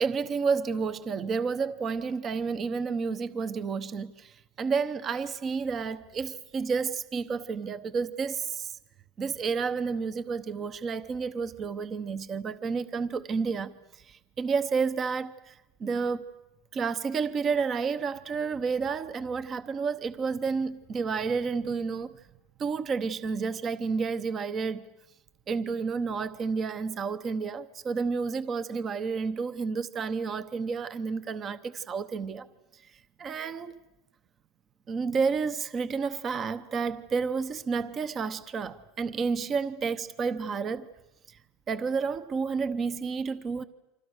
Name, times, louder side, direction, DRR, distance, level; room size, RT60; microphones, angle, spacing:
voice 1, 0.0-8.7 9.2-13.7 14.1-16.2 16.7-22.1 22.6-24.8 25.5-32.5 33.2-33.8 34.9-40.9 41.7-43.6, right 5 dB, 25° right, 0.9 m, -30 dB
29.0 x 25.5 x 6.5 m
supercardioid pair, 145°, 0 cm